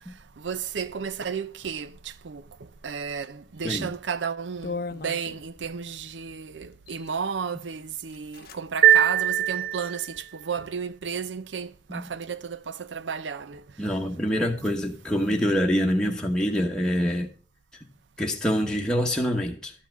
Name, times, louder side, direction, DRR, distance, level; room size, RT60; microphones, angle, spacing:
voice 1, 0.4-2.4 2.8-13.6, right 6 dB, 90° right, 0.6 m, -33 dB
sound 1, 3.8-4.0 4.6-5.8 6.7-7.2 7.7-7.8 8.1-8.6 8.9-9.0 9.5-10.2, left 4 dB, 55° left, 0.6 m, -38 dB
sound 2, 8.8-10.3, right 11 dB, 50° right, 0.8 m, -21 dB
voice 2, 13.8-17.3 18.2-19.7, equal, 5° left, 1.1 m, -25 dB
12.0 x 5.7 x 6.0 m
head